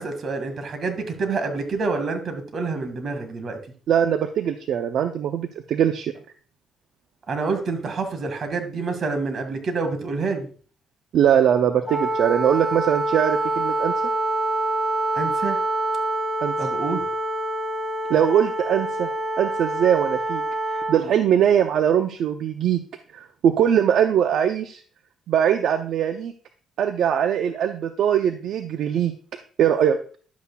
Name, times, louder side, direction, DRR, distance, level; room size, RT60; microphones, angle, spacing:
voice 1, 0.0-3.6 7.3-10.5 15.2-15.6 16.6-17.0, right 4 dB, 55° right, 7 dB, 1.8 m, -27 dB
voice 2, 3.9-6.1 11.1-13.9 16.4-16.5 18.1-19.1 19.4-22.8 23.1-24.8 25.3-26.3 26.8-29.1 29.6-30.0, right 9 dB, 70° right, 8 dB, 0.6 m, -21 dB
Wind instrument woodwind instrument, 11.8-21.0, right 2 dB, 10° left, 2.0 m, -26 dB
11.5 x 8.3 x 2.3 m, 0.43 s
cardioid pair, 90°, 0 cm